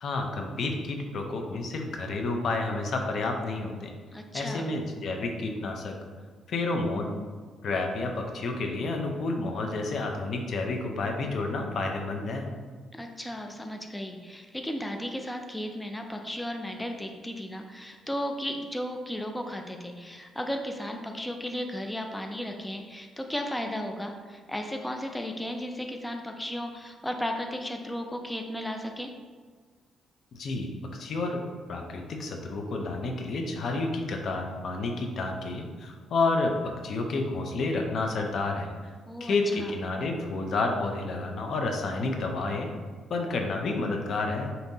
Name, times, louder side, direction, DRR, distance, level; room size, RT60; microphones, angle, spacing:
voice 1, 0.0-3.9 4.3-6.0 6.5-7.1 7.6-12.5 30.3-31.4 31.7-36.5 36.8-38.9 39.2-42.7 43.1-44.5, left 3 dB, 60° left, 3 dB, 0.6 m, -30 dB
voice 2, 4.1-4.7 12.9-29.1 39.1-39.7, equal, 10° left, 3 dB, 0.4 m, -35 dB
5.2 x 2.8 x 2.7 m, 1.5 s
cardioid pair, 90°, 0 cm